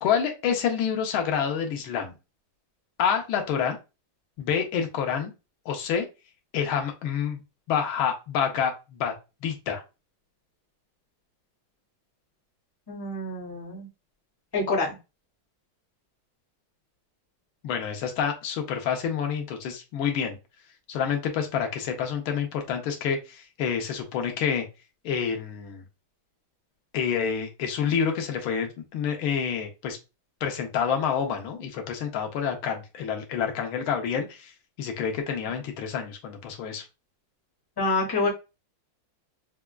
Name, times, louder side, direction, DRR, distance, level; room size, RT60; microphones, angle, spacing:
voice 1, 0.0-2.1 3.0-3.8 4.4-5.3 5.7-6.1 6.5-7.4 7.7-9.1 9.4-9.8 17.6-20.4 20.9-24.7 25.0-25.8 26.9-30.0 30.4-34.5 34.8-36.8, left 7 dB, 85° left, 3 dB, 1.5 m, -28 dB
voice 2, 12.9-13.9 14.5-14.9 37.8-38.3, left 3 dB, 15° left, -2 dB, 0.8 m, -27 dB
4.6 x 2.3 x 2.2 m, 0.28 s
omnidirectional pair, 2.2 m